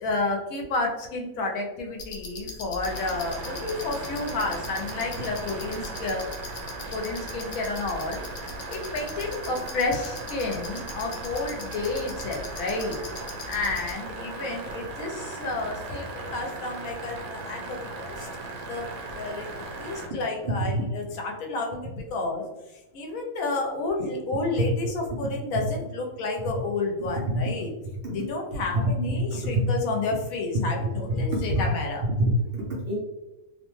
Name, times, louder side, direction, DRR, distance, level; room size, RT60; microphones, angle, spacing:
voice 1, 0.0-6.2 6.9-13.0 13.5-18.3 18.7-19.5 19.8-22.5 22.9-27.7 28.1-32.0, left 3 dB, 85° left, 1 dB, 1.1 m, -30 dB
sound 1, 2.0-13.9, left 3 dB, 65° left, 0.4 m, -41 dB
sound 2, 2.8-20.1, right 3 dB, 85° right, 1.1 m, -38 dB
voice 2, 32.2-33.0, equal, 60° right, -4 dB, 0.6 m, -26 dB
2.7 x 2.1 x 3.0 m, 1.0 s
omnidirectional pair, 1.5 m